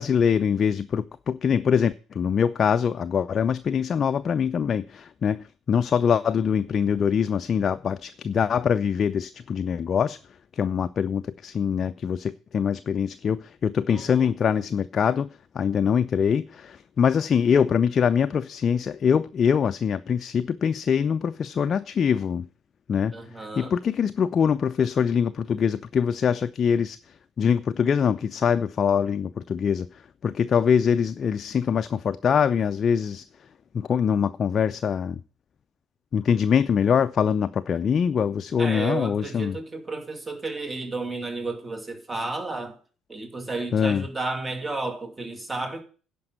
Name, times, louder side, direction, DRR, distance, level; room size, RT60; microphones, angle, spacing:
voice 1, 0.0-10.2 10.5-15.3 15.5-22.5 22.9-23.1 23.5-29.9 30.2-33.2 33.7-35.2 36.1-39.6 43.7-44.1, left 7 dB, 45° left, 0.4 m, -23 dB
voice 2, 13.9-14.3 23.1-23.7 38.6-42.8 43.1-45.8, right 3 dB, 25° right, 2.4 m, -32 dB
10.5 x 5.3 x 7.9 m
hypercardioid pair, 60°, 0 cm